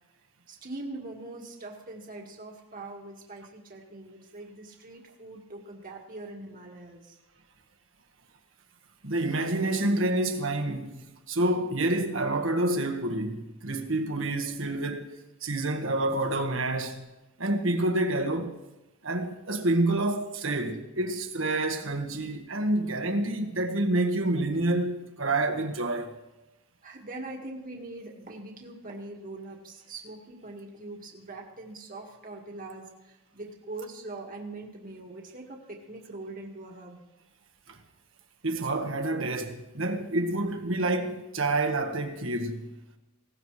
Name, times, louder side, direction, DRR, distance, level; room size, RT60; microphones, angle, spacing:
voice 1, 0.5-7.2 26.8-37.0, right 2 dB, 40° right, 1.9 m, -42 dB
voice 2, 9.0-15.1 15.4-17.1 17.4-18.6 19.0-26.2 37.7-37.8 38.4-42.8, right 2 dB, 65° right, 1.6 m, -28 dB
19.0 x 17.5 x 3.3 m
head